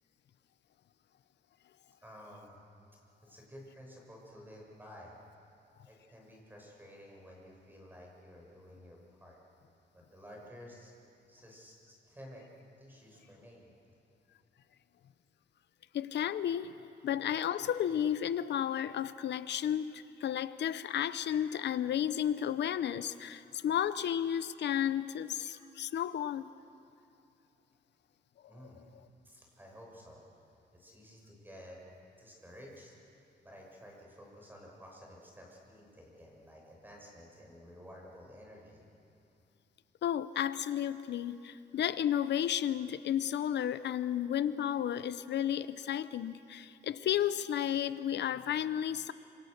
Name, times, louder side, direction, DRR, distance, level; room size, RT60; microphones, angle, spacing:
voice 1, 2.0-2.6 3.2-5.1 5.8-9.4 9.9-10.9 11.3-12.4 12.8-13.7 28.5-28.8 29.2-30.2 30.7-31.8 32.2-32.9 33.4-38.8, equal, 10° right, -1 dB, 6.6 m, -52 dB
voice 2, 15.9-26.5 28.4-28.5 40.0-49.1, left 10 dB, 75° left, 14 dB, 0.7 m, -33 dB
27.0 x 26.5 x 6.7 m, 2.7 s
wide cardioid pair, 140°, 18 cm